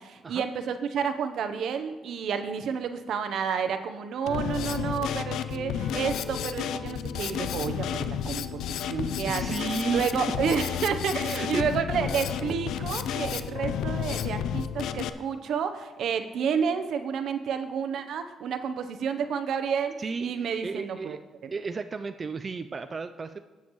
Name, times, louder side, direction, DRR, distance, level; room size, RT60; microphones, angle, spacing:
voice 1, 0.0-9.4 9.8-21.2 21.4-21.5, right 7 dB, 70° right, 8 dB, 0.8 m, -30 dB
Drum kit, 4.3-15.1, left 9 dB, 80° left, 0.4 m, -31 dB
voice 2, 9.2-10.1 11.3-11.7 20.0-20.3 20.6-21.2 21.5-23.4, right 4 dB, 35° right, 8 dB, 0.4 m, -33 dB
16.5 x 7.1 x 3.1 m, 1.3 s
cardioid pair, 90°, 0 cm